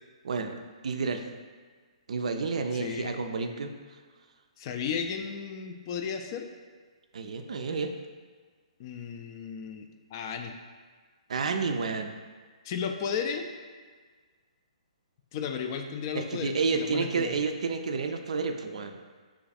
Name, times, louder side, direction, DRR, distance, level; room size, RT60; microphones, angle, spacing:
voice 1, 0.2-0.6 0.8-1.2 2.1-3.7 7.1-7.9 11.3-12.1 16.1-19.0, right 4 dB, 70° right, 6 dB, 0.3 m, -30 dB
voice 2, 2.7-3.2 4.6-6.5 8.8-10.5 12.6-13.5 15.3-17.4, left 6 dB, 40° left, 5 dB, 0.3 m, -34 dB
3.1 x 2.3 x 4.0 m, 1.5 s
hypercardioid pair, 140°, 4 cm